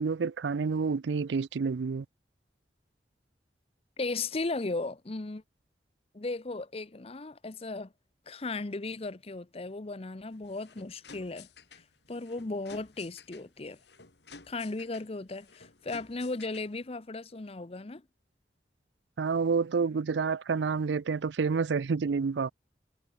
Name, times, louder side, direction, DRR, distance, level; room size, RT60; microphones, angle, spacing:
voice 1, 0.0-2.1 19.2-22.5, right 5 dB, 85° right, 0.5 m, -29 dB
voice 2, 4.0-5.4 6.1-7.9 8.3-11.8 12.1-13.8 14.5-18.0, left 3 dB, 35° left, 0.7 m, -36 dB
sound 1, 10.3-16.9, left 4 dB, 75° left, 4.0 m, -53 dB
head